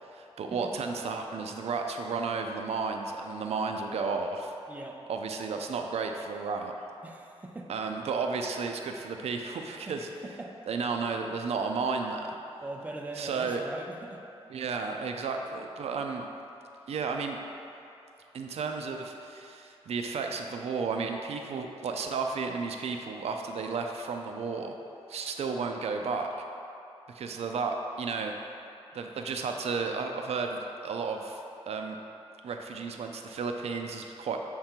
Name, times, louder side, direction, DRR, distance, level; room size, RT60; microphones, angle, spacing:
voice 1, 0.1-4.5 5.1-6.7 7.7-10.1 10.7-12.3 13.2-13.6 14.5-16.3 16.9-17.4 18.3-24.8 25.1-26.4 27.1-28.3 28.9-31.4 31.7-32.0 32.4-34.4, right 4 dB, 75° right, 4 dB, 0.4 m, -33 dB
voice 2, 4.7-5.0 7.0-7.7 9.9-10.5 12.6-14.2, right 2 dB, 15° right, 1 dB, 0.4 m, -41 dB
6.5 x 3.7 x 4.4 m, 2.8 s
wide cardioid pair, 170°, 11 cm